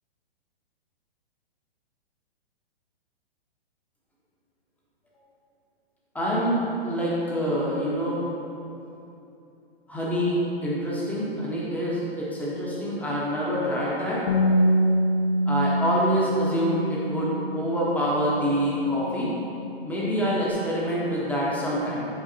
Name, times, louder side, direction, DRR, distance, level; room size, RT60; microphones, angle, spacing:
voice 1, 6.1-6.6 6.8-8.2 9.9-14.2 15.5-19.3 19.8-22.0, equal, 5° left, -6 dB, 1.1 m, -26 dB
Bass guitar, 14.3-20.5, equal, 80° left, 0.7 m, -26 dB
8.0 x 4.9 x 2.8 m, 2.7 s
hypercardioid pair, 125°, 31 cm